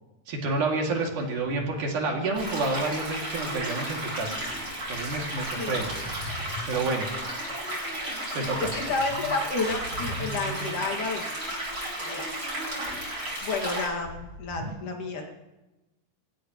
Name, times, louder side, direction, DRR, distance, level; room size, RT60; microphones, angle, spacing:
voice 1, 0.3-4.4 4.9-5.9 6.7-7.1 8.3-8.7, right 3 dB, 80° right, 0 dB, 4.1 m, -29 dB
sound 1, 1.4-13.0 13.6-13.7 14.0-14.7, equal, 20° left, 8.1 m, -42 dB
sound 2, 2.3-13.9, right 1 dB, 35° right, 7.9 m, -34 dB
voice 2, 5.4-6.2 8.6-11.2 12.0-12.2 13.4-15.3, left 3 dB, 75° left, 2 dB, 3.7 m, -31 dB
26.5 x 16.0 x 3.1 m, 1.0 s
omnidirectional pair, 3.5 m